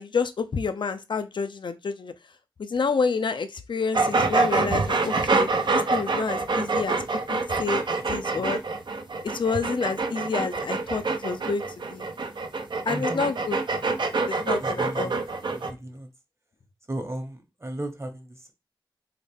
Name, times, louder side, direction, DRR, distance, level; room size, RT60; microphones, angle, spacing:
voice 1, 0.0-2.1 2.6-7.8 8.1-8.6 9.2-11.6 11.9-12.1 12.9-13.6 14.3-15.1, left 5 dB, 70° left, 0.4 m, -29 dB
sound 1, 3.9-15.7, right 3 dB, 65° right, 0.5 m, -26 dB
voice 2, 7.7-8.0 8.3-8.5 12.9-13.3 14.6-15.2 15.5-16.1 16.9-18.5, right 1 dB, 30° right, 1.0 m, -36 dB
3.8 x 2.1 x 3.4 m
cardioid pair, 50°, 8 cm